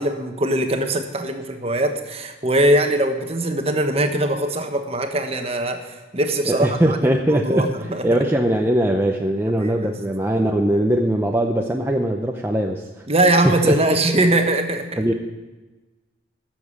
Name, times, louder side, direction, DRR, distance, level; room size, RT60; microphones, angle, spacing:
voice 1, 0.0-8.2 9.5-9.9 13.1-15.0, right 1 dB, 30° right, 6 dB, 1.2 m, -21 dB
voice 2, 6.5-7.6 8.0-13.0 13.6-13.7 15.0-15.1, right 1 dB, 10° right, 2 dB, 0.6 m, -20 dB
13.5 x 7.2 x 8.5 m, 1.2 s
head